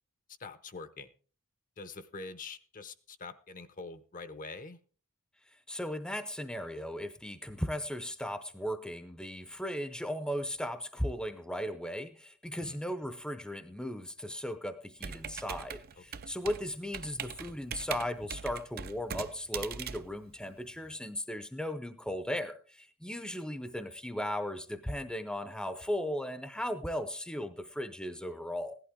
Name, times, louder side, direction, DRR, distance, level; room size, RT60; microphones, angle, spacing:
voice 1, 0.4-1.1 1.8-4.8 12.6-12.8 16.0-16.1, left 3 dB, 35° left, 11 dB, 0.8 m, -45 dB
voice 2, 5.7-28.8, equal, 5° left, 10 dB, 0.7 m, -37 dB
Computer keyboard, 15.0-20.9, right 7 dB, 45° right, 0.6 m, -41 dB
16.0 x 11.5 x 3.7 m, 0.40 s
head